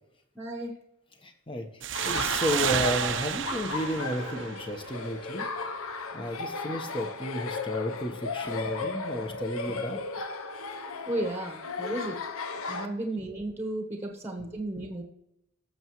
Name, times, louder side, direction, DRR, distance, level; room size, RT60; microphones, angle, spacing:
voice 1, 0.3-0.7 11.1-12.2 12.7-15.0, right 1 dB, 10° right, 3 dB, 1.2 m, -34 dB
voice 2, 1.2-1.7 2.0-5.5 6.1-10.0 14.3-14.4, equal, 25° left, 5 dB, 1.1 m, -32 dB
sound 1, 1.8-5.2, right 8 dB, 60° right, 0.7 m, -31 dB
Laughter, 1.9-12.9, left 3 dB, 90° left, 0.9 m, -36 dB
18.0 x 7.1 x 3.2 m, 0.83 s
head